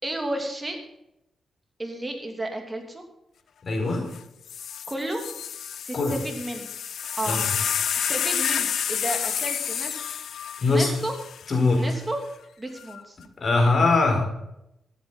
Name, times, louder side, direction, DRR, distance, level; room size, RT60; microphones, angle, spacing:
voice 1, 0.0-0.9 1.8-3.0 4.9-5.2 5.8-6.7 7.2-7.5 8.1-9.9 10.7-11.1 11.7-12.2 12.6-13.2, right 1 dB, 20° right, 3 dB, 3.1 m, -32 dB
voice 2, 3.6-4.0 5.9-6.2 7.2-7.4 10.6-10.9 11.5-11.8 13.4-14.2, left 3 dB, 50° left, 2 dB, 4.4 m, -21 dB
sound 1, 4.1-4.2 4.5-11.9 12.8-13.2, left 8 dB, 75° left, 0.6 m, -29 dB
13.5 x 9.2 x 5.6 m, 0.82 s
cardioid pair, 75°, 0 cm